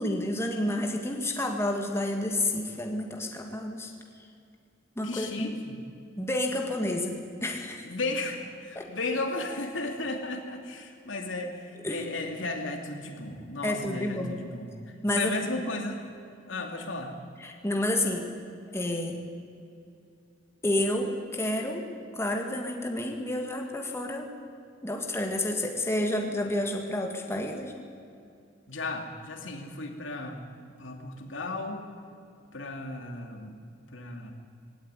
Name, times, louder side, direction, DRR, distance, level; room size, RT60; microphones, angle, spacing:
voice 1, 0.0-3.9 5.0-5.5 6.2-7.9 8.8-8.9 11.8-12.0 13.6-14.4 15.0-15.3 17.4-18.3 18.7-19.2 20.6-21.9 22.1-24.3 24.8-27.7, left 1 dB, 15° left, 2 dB, 1.9 m, -30 dB
voice 2, 5.0-5.8 7.8-14.7 15.1-16.1 16.5-17.1 28.7-30.4 30.8-31.8 32.5-33.5 33.9-34.3, left 2 dB, 70° left, 3 dB, 2.7 m, -34 dB
19.5 x 17.5 x 9.9 m, 2.5 s
head